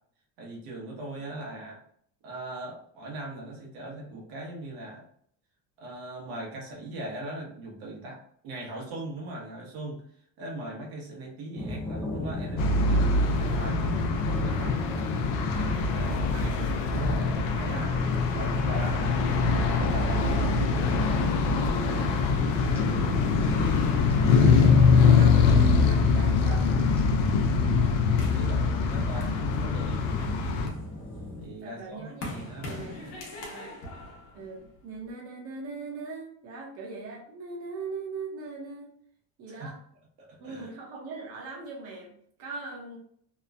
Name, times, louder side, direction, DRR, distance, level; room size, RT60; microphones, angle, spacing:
voice 1, 0.4-1.8 2.2-5.1 5.8-10.0 10.4-14.8 15.5-16.2 16.9-18.1 18.3-19.2 19.6-20.6 27.4-30.8 31.4-32.9 39.5-39.7 40.2-40.7, right 1 dB, 75° right, -1 dB, 1.0 m, -40 dB
sound 1, 11.6-31.5, left 1 dB, 5° left, 0.4 m, -35 dB
sound 2, 12.6-30.7, left 4 dB, 65° left, 0.5 m, -23 dB
voice 2, 15.4-16.7 20.6-20.7 21.6-22.1 23.1-26.7 28.9-29.3 31.6-33.0 33.4-33.7 34.3-38.9 39.4-39.8 40.4-42.1 42.4-43.0, right 3 dB, 40° right, -1 dB, 0.8 m, -41 dB
sound 3, 28.2-30.0 30.5-35.1, left 1 dB, 80° left, 0.9 m, -42 dB
2.9 x 2.1 x 2.5 m, 0.64 s
cardioid pair, 175°, 36 cm